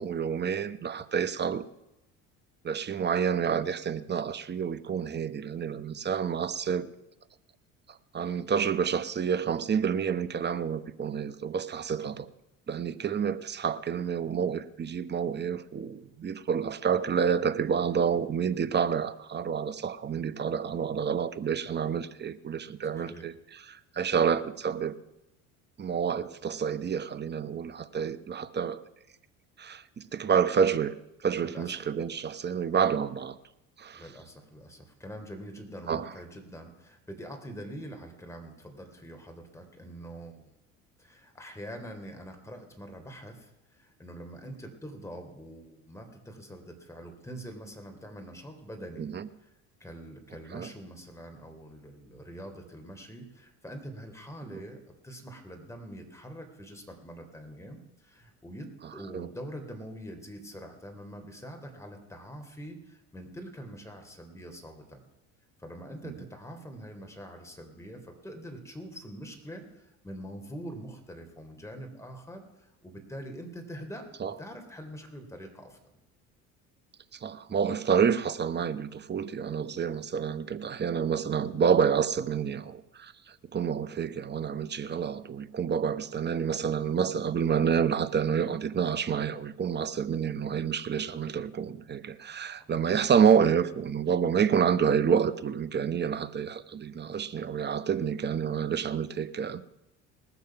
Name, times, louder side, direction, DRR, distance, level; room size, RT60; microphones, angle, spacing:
voice 1, 0.0-1.6 2.6-6.9 7.9-12.3 12.7-23.3 23.7-24.9 25.8-28.8 29.6-31.0 31.2-33.4 33.8-34.0 35.9-36.1 49.0-49.3 50.5-50.7 54.5-54.6 59.1-59.3 66.0-66.2 74.2-74.3 77.1-99.6, right 7 dB, 30° right, 0.9 m, -28 dB
voice 2, 31.4-31.7 33.9-40.4 41.0-49.1 49.4-49.5 49.8-65.0 65.6-74.1 74.4-75.8 92.6-92.8, equal, 10° left, 3.1 m, -44 dB
19.5 x 7.1 x 5.8 m
hypercardioid pair, 75°, 37 cm